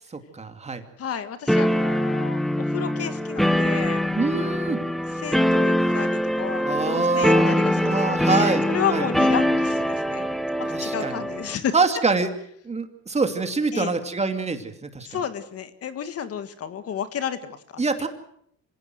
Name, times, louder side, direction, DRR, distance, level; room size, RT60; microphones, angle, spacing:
voice 1, 0.1-0.8 4.2-4.8 5.9-6.2 6.6-9.1 10.7-11.2 11.7-12.3 12.6-15.1 17.8-18.1, right 4 dB, 20° right, 7 dB, 2.6 m, -25 dB
voice 2, 1.0-4.0 5.2-10.3 10.8-11.7 13.7-13.9 15.0-17.8, left 8 dB, 45° left, 11 dB, 1.8 m, -31 dB
sound 1, 1.5-11.6, left 1 dB, ahead, 1.2 m, -23 dB
25.5 x 17.0 x 7.9 m, 0.71 s
cardioid pair, 115°, 32 cm